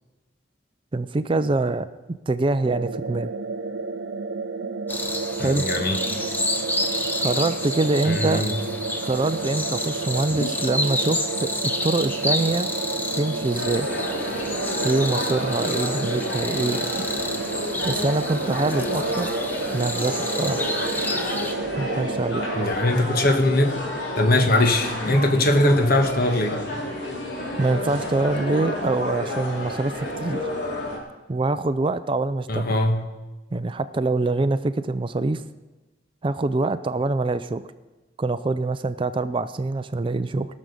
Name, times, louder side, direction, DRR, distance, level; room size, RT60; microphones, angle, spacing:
voice 1, 0.9-1.9 2.3-3.3 5.4-5.7 6.9-8.4 9.0-12.7 13.1-13.9 14.8-17.0 17.8-19.3 19.7-20.6 21.8-22.5 27.6-30.4 31.3-32.7 33.5-35.4 36.2-37.6 38.2-40.5, right 2 dB, 30° right, 13 dB, 0.4 m, -24 dB
sound 1, 2.6-22.6, right 4 dB, 85° right, 0.6 m, -32 dB
sound 2, 4.9-21.5, left 1 dB, 10° left, 0.9 m, -30 dB
voice 2, 5.4-6.3 8.0-8.5 10.3-10.5 22.5-23.7 24.2-26.6 32.5-33.1, left 1 dB, 55° left, 5 dB, 1.3 m, -21 dB
sound 3, 13.5-31.0, left 1 dB, 75° left, 3.1 m, -30 dB
18.5 x 6.4 x 6.8 m, 1.1 s
head